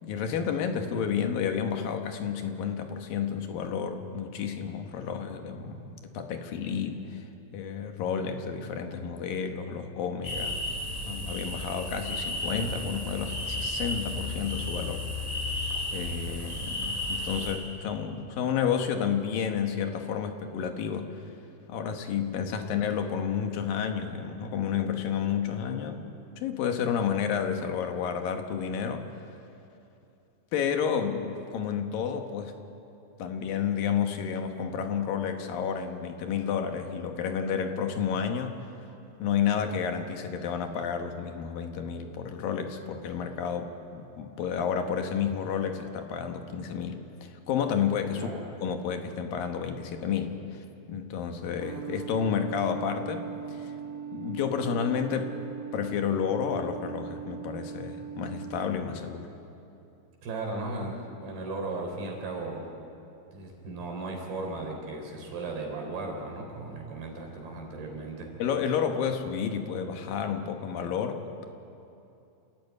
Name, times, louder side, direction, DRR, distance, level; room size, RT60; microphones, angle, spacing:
voice 1, 0.0-7.2 7.5-10.6 11.0-15.0 15.9-21.1 21.7-26.1 26.4-29.1 30.5-32.5 33.2-38.6 39.2-53.7 54.1-55.3 55.7-59.3 68.4-71.5, left 7 dB, 75° left, 5 dB, 3.0 m, -31 dB
sound 1, 10.2-17.5, left 1 dB, 5° right, 3.8 m, -33 dB
sound 2, 51.6-58.7, right 8 dB, 60° right, 2.6 m, -39 dB
voice 2, 60.2-62.7 63.3-68.3, right 2 dB, 85° right, 1 dB, 5.6 m, -36 dB
28.5 x 14.0 x 9.5 m, 2.8 s
omnidirectional pair, 4.3 m